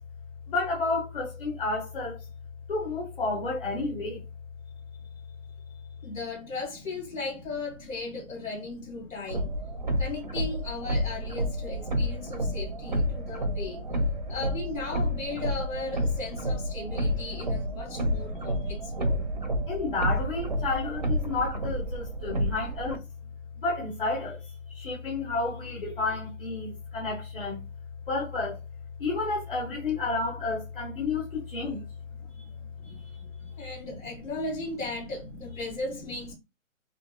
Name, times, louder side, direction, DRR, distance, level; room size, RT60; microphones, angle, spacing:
voice 1, 0.5-2.2 2.7-4.2 13.3-13.4 18.0-18.2 18.4-18.7 19.3-23.0 23.6-24.4 24.7-27.6 28.1-28.6 29.0-31.8 32.8-33.0 33.9-34.0, left 3 dB, 40° left, 1.4 m, -31 dB
voice 2, 5.7-9.5 10.0-13.8 14.3-19.3 33.6-36.3, left 3 dB, 80° left, 2.6 m, -36 dB
sound 1, 9.3-23.0, equal, 35° right, 0.5 m, -30 dB
6.0 x 2.6 x 2.2 m
hypercardioid pair, 175°, 40 cm